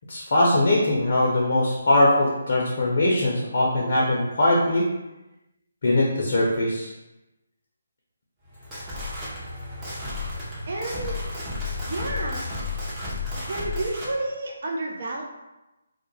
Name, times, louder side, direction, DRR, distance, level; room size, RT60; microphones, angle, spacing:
voice 1, 0.1-4.9 5.8-6.9, left 1 dB, 55° left, -3 dB, 0.5 m, -21 dB
sound 1, 8.5-14.1, left 3 dB, 15° right, 0.7 m, -32 dB
voice 2, 10.7-11.2 11.9-12.4 13.3-15.2, right 2 dB, 55° right, -1 dB, 0.4 m, -30 dB
2.2 x 2.0 x 3.0 m, 1.0 s
figure-of-eight pair, 145°, 0 cm